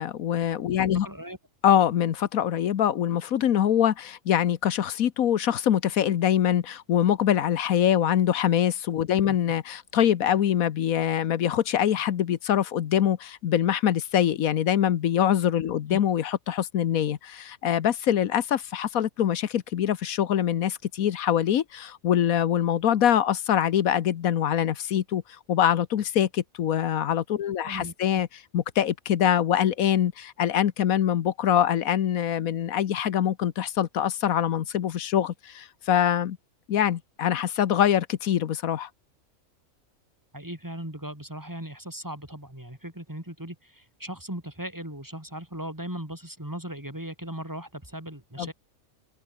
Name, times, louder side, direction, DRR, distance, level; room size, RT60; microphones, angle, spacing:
voice 1, 0.0-1.1 1.6-25.2 25.5-28.3 28.5-36.4 36.7-38.9 48.4-48.5, left 10 dB, 85° left, 1.4 m, -24 dB
voice 2, 1.0-1.4 9.3-9.4 15.9-16.0 27.6-28.2 40.3-48.5, right 1 dB, 15° right, 3.5 m, -38 dB
omnidirectional pair, 1.4 m